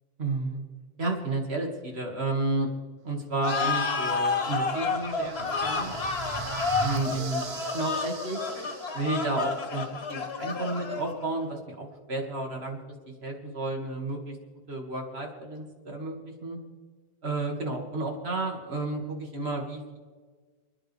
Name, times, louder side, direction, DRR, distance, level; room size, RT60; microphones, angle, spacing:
voice 1, 0.2-0.6 1.0-2.7 3.0-5.9 6.8-7.5 7.7-8.4 8.9-12.8 13.1-14.4 14.7-16.6 17.2-20.0, right 2 dB, 90° right, 1 dB, 2.5 m, -32 dB
sound 1, 3.4-11.3, left 4 dB, 85° left, 1.7 m, -30 dB
sound 2, 4.4-9.5, right 5 dB, 40° right, 0.6 m, -39 dB
30.0 x 10.0 x 3.4 m, 1.4 s
omnidirectional pair, 1.0 m